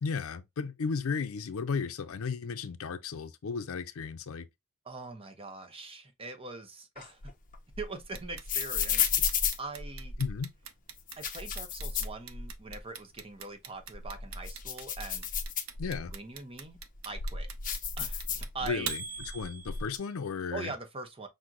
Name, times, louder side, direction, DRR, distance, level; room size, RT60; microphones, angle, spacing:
voice 1, 0.0-4.5 10.2-10.5 15.8-16.1 18.6-20.7, left 5 dB, 75° left, 0.5 m, -34 dB
voice 2, 4.9-7.3 7.8-9.0 9.6-10.1 11.2-15.3 16.1-16.8 17.0-17.5 18.0-18.9 20.5-21.3, right 3 dB, 25° right, 0.8 m, -42 dB
sound 1, 7.0-10.4 11.0-12.8 13.2-13.3 13.8-16.2 16.7-18.9 19.2-20.0, left 7 dB, 40° left, 0.7 m, -33 dB
Clock, 8.1-20.1, right 7 dB, 85° right, 0.7 m, -42 dB
6.1 x 2.1 x 3.7 m
head